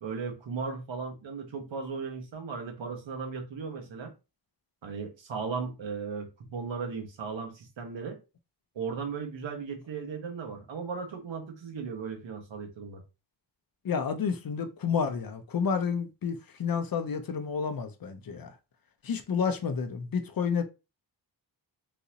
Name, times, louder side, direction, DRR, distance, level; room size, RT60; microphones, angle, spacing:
voice 1, 0.0-4.1 4.8-8.2 8.7-13.0, right 5 dB, 90° right, 1.1 m, -36 dB
voice 2, 13.8-18.5 19.0-20.6, left 6 dB, 50° left, 0.6 m, -30 dB
3.9 x 2.5 x 2.8 m
wide cardioid pair, 120°, 44 cm